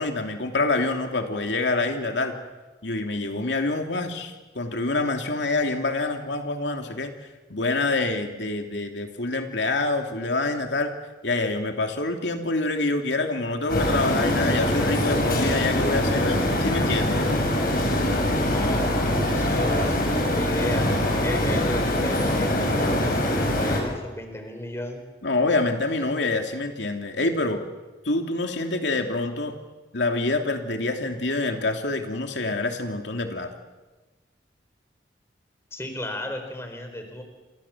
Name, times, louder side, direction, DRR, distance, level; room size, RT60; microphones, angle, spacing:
voice 1, 0.0-2.4 2.8-7.1 7.5-10.9 11.2-17.2 25.2-27.6 28.0-29.6 29.9-33.5, left 2 dB, 90° left, 4 dB, 2.9 m, -26 dB
sound 1, 13.7-23.8, left 1 dB, 50° left, 7.3 m, -23 dB
voice 2, 18.5-20.9 21.2-25.0 35.7-37.2, left 1 dB, 15° left, 5 dB, 4.4 m, -34 dB
28.5 x 26.5 x 7.4 m, 1.2 s
head